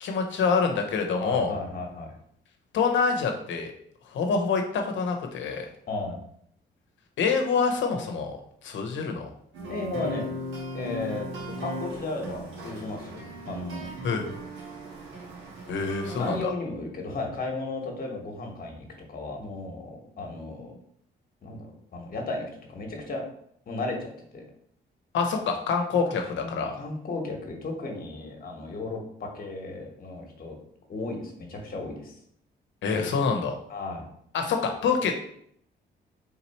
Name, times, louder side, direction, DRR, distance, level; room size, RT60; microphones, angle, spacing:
voice 1, 0.0-1.6 2.7-3.7 4.1-5.7 7.2-9.3 14.0-14.2 15.7-16.5 25.1-26.7 32.8-33.6 34.3-35.2, left 5 dB, 70° left, 3 dB, 0.9 m, -26 dB
voice 2, 1.1-2.1 5.9-6.2 9.7-10.3 10.7-11.3 11.6-13.9 16.2-20.7 21.4-23.2 23.7-24.4 26.1-30.6 30.9-32.1 33.7-34.1, left 2 dB, 45° left, 1 dB, 1.3 m, -35 dB
sound 1, 9.5-16.4, right 1 dB, 80° right, 1.4 m, -37 dB
3.7 x 2.9 x 4.3 m, 0.68 s
cardioid pair, 90°, 20 cm